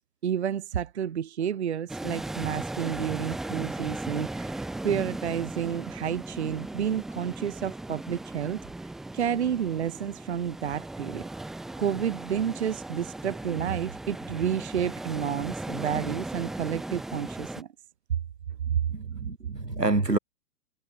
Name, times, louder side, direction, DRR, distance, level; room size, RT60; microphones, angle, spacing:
voice 1, 0.2-8.6 9.1-11.2 11.8-17.7 18.7-18.8, right 8 dB, 45° right, 0.7 m, -30 dB
sound 1, 1.9-17.6, right 2 dB, ahead, 0.7 m, -37 dB
voice 2, 18.9-20.2, right 2 dB, 80° right, 4.9 m, -27 dB
figure-of-eight pair, 125°, 48 cm